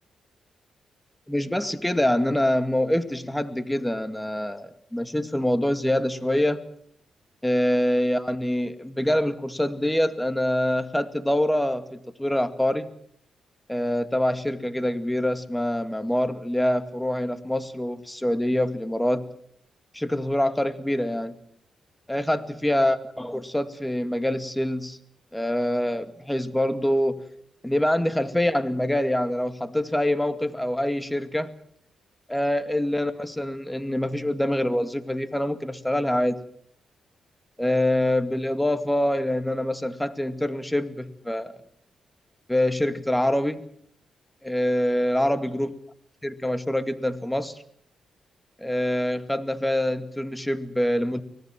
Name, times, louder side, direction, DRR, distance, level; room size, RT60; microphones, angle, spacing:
voice 1, 1.3-6.6 7.4-12.9 13.7-19.3 19.9-21.3 22.1-25.0 25.3-27.2 27.6-31.6 32.3-36.4 37.6-41.5 42.5-43.7 44.4-45.7 46.2-47.6 48.6-51.2, left 1 dB, 10° left, 11 dB, 2.2 m, -25 dB
25.0 x 19.0 x 7.5 m, 0.65 s
supercardioid pair, 50°, 0 cm